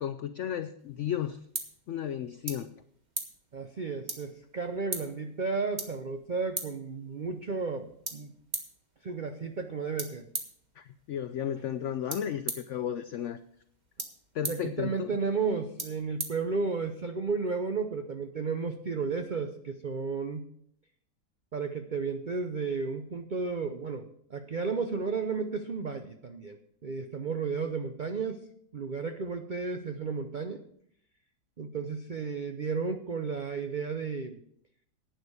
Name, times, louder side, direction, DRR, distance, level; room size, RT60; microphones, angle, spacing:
voice 1, 0.0-1.4 1.9-2.7 10.8-13.4 14.3-15.2, left 10 dB, 85° left, 11 dB, 0.6 m, -34 dB
sound 1, 0.8-17.1, right 2 dB, 25° right, 1.5 m, -43 dB
voice 2, 3.5-8.3 9.0-10.3 14.4-20.4 21.5-28.5 28.7-30.6 31.6-34.4, right 4 dB, 80° right, 7 dB, 0.4 m, -33 dB
11.0 x 9.2 x 4.9 m, 0.67 s
omnidirectional pair, 1.9 m